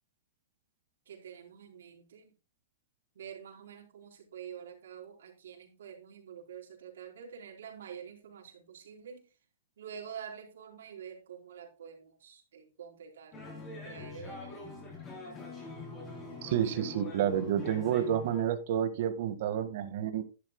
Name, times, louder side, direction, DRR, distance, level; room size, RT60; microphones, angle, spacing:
voice 1, 1.1-2.3 3.1-9.3 9.8-13.4 13.8-14.8, right 8 dB, 80° right, 2 dB, 4.2 m, -47 dB
sound 1, 13.3-18.4, left 3 dB, 15° left, 3.6 m, -44 dB
voice 2, 16.4-20.2, right 10 dB, 50° right, 10 dB, 1.7 m, -30 dB
11.5 x 11.5 x 2.2 m, 0.32 s
hypercardioid pair, 170°, 0 cm